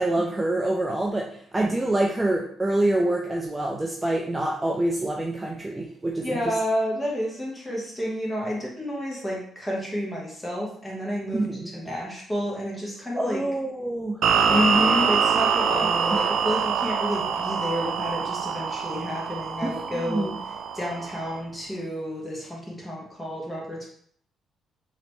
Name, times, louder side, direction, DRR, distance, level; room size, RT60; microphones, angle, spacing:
voice 1, 0.0-6.4 11.3-11.7 13.2-14.2 19.6-20.3, right 1 dB, 15° right, 0 dB, 0.5 m, -26 dB
voice 2, 6.2-11.5 11.7-13.4 14.5-20.3 20.7-23.9, left 1 dB, 10° left, -4 dB, 1.6 m, -30 dB
sound 1, 14.2-21.4, right 6 dB, 65° right, 0.4 m, -25 dB
3.9 x 3.1 x 3.2 m, 0.62 s
cardioid pair, 90°, 0 cm